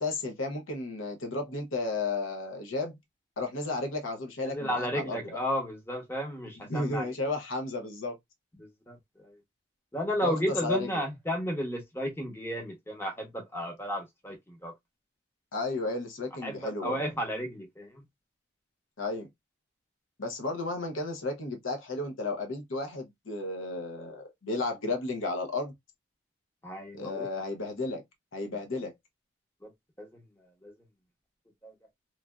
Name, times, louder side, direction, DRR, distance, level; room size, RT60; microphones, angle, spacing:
voice 1, 0.0-2.9 3.4-5.2 6.7-8.2 10.1-11.0 15.5-17.0 19.0-19.3 20.2-25.7 27.0-28.0 28.3-28.9, left 2 dB, 90° left, 0.8 m, -33 dB
voice 2, 4.4-7.1 8.6-9.4 9.9-14.7 16.4-18.0 26.6-27.3 29.6-29.7 30.0-30.2 30.6-30.7 31.6-31.7, equal, 10° left, 0.8 m, -33 dB
3.2 x 2.5 x 2.2 m
head